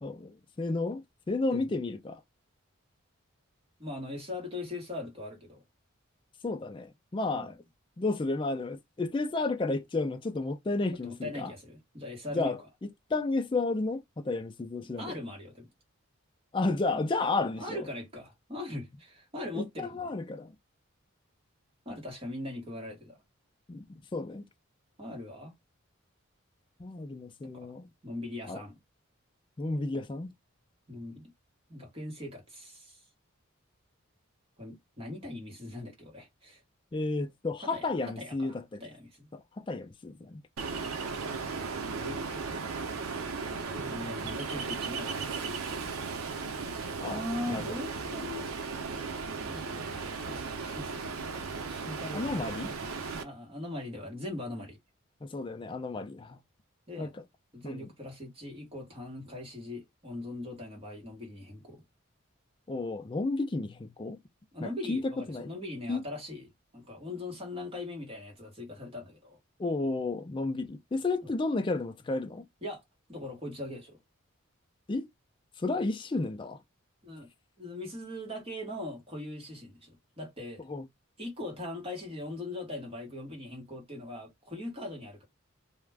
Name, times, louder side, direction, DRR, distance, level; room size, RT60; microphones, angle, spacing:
voice 1, 0.0-2.2 6.4-7.6 8.0-11.5 12.3-15.1 16.5-17.8 19.5-20.5 23.7-23.8 24.1-24.5 26.8-27.9 28.5-28.6 29.6-30.3 36.9-38.6 39.3-40.4 47.0-47.2 47.5-47.6 52.1-52.7 53.1-53.2 55.2-56.4 57.0-57.1 57.6-57.9 62.7-64.2 64.6-65.5 65.9-66.0 69.6-72.5 74.9-75.1 75.6-76.6 80.7-80.8, left 3 dB, 25° left, 0.3 m, -32 dB
voice 2, 3.8-5.6 7.3-7.5 11.0-12.5 14.8-15.7 17.6-20.1 21.8-23.2 25.0-25.5 27.4-27.8 28.0-28.7 30.9-31.3 31.7-33.0 34.6-36.6 37.6-39.3 41.8-42.5 43.8-45.6 47.0-48.5 49.4-52.3 53.2-54.8 56.9-57.2 57.5-61.8 64.5-69.4 71.2-71.3 72.6-72.8 73.1-74.0 77.0-77.3 77.6-80.6 81.2-85.3, left 1 dB, 25° right, 1.1 m, -40 dB
Ocean, 40.6-53.2, right 4 dB, 90° right, 0.6 m, -36 dB
2.4 x 2.1 x 3.3 m
head